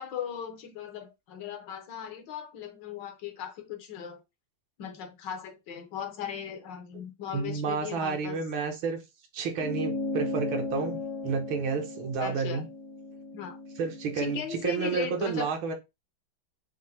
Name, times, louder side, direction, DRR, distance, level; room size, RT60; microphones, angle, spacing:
voice 1, 0.0-4.2 4.8-8.4 12.2-12.6 13.3-13.6 14.2-15.5, left 8 dB, 70° left, 1.3 m, -38 dB
voice 2, 7.3-9.0 9.3-12.6 13.8-15.7, right 5 dB, 75° right, 1.7 m, -30 dB
sound 1, 9.6-14.4, left 2 dB, 50° left, 0.9 m, -36 dB
5.8 x 2.0 x 3.3 m
omnidirectional pair, 2.2 m